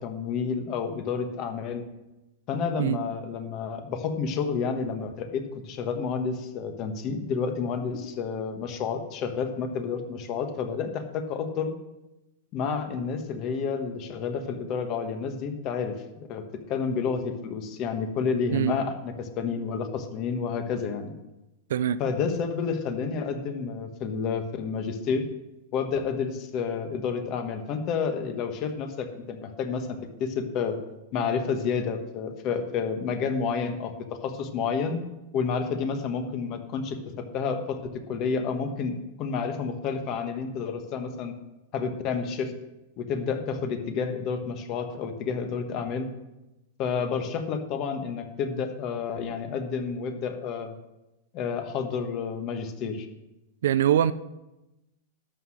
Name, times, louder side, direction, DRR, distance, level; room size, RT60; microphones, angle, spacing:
voice 1, 0.0-1.8 2.5-11.7 12.5-21.1 22.0-25.2 25.7-30.8 31.1-33.9 34.2-35.0 35.3-37.8 38.1-41.3 41.7-42.5 43.0-46.1 46.8-50.7 51.3-53.1, left 5 dB, 40° left, 1.4 m, -30 dB
voice 2, 53.6-54.1, right 10 dB, 80° right, 0.5 m, -23 dB
12.5 x 5.8 x 6.4 m
supercardioid pair, 145°, 0 cm